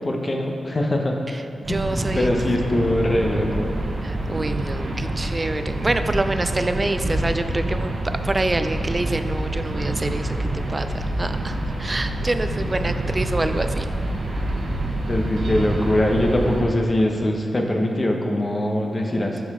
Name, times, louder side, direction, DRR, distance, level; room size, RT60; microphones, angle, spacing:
voice 1, 0.0-1.2 1.7-3.7 15.1-19.4, left 1 dB, 40° left, 2 dB, 1.1 m, -22 dB
voice 2, 1.3-2.3 4.0-13.9, right 2 dB, 35° right, 9 dB, 0.5 m, -27 dB
sound 1, 1.6-16.6, right 1 dB, 75° right, 1.3 m, -27 dB
11.5 x 4.7 x 3.7 m, 2.7 s
cardioid pair, 45°, 0 cm